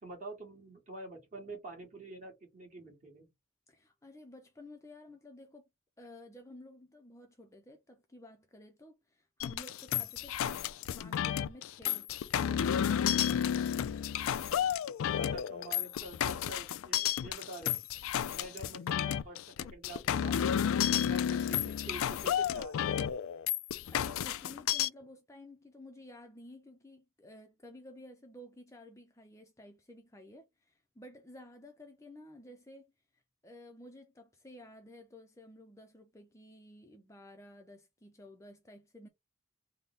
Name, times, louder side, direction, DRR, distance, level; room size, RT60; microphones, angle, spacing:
voice 1, 0.0-3.3 15.2-17.8 18.3-20.4 21.1-22.7, right 2 dB, 40° right, 1.6 m, -47 dB
voice 2, 3.7-5.6 6.0-14.2 23.9-32.9 33.4-39.1, left 1 dB, 15° left, 0.5 m, -53 dB
sound 1, 9.4-24.9, left 9 dB, 90° left, 0.3 m, -32 dB
3.5 x 2.1 x 3.9 m
head